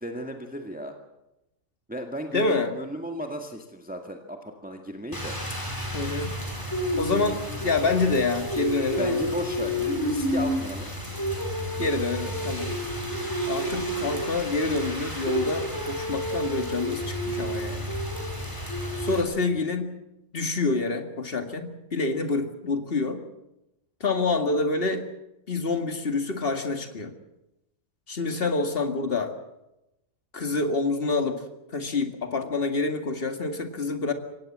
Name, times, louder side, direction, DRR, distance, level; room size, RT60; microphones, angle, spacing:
voice 1, 0.0-0.9 1.9-5.4 9.0-10.9, equal, 5° right, 3 dB, 1.8 m, -34 dB
voice 2, 2.3-2.7 5.9-6.3 7.0-9.2 11.8-12.7 13.5-17.9 19.0-19.9 20.3-23.2 24.0-25.1 25.5-27.2 28.1-29.3 30.3-31.4 31.7-34.1, left 3 dB, 40° left, 6 dB, 2.3 m, -27 dB
Rain, 5.1-19.2, equal, 15° left, 5.0 m, -30 dB
24.0 x 18.0 x 7.5 m, 0.90 s
omnidirectional pair, 1.5 m